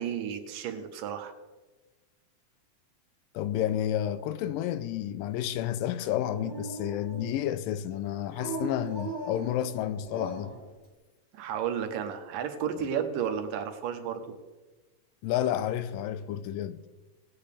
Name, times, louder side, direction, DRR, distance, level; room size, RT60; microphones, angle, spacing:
voice 1, 0.0-1.3 11.3-14.4, right 8 dB, 80° right, 2.6 m, -32 dB
voice 2, 3.3-10.5 15.2-16.8, left 11 dB, 85° left, 2.3 m, -30 dB
Dog, 6.0-7.5 8.3-10.7, right 2 dB, 30° left, 2.7 m, -39 dB
18.5 x 8.7 x 3.4 m
omnidirectional pair, 3.9 m